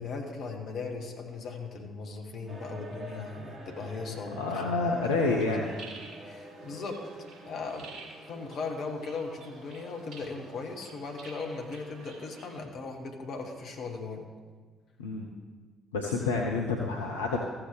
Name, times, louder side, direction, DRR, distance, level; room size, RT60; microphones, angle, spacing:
voice 1, 0.0-4.9 5.2-5.6 6.2-7.0 7.4-8.0 8.3-14.3, left 4 dB, 55° left, 3 dB, 1.2 m, -38 dB
sound 1, 2.5-13.7, right 1 dB, 30° right, 1.8 m, -49 dB
voice 2, 4.4-5.7 15.0-15.3 15.9-17.4, left 3 dB, 80° left, 0 dB, 0.6 m, -28 dB
sound 2, 5.0-12.7, right 3 dB, 60° right, 1.7 m, -51 dB
14.5 x 7.2 x 3.5 m, 1.5 s
figure-of-eight pair, 45°, 0 cm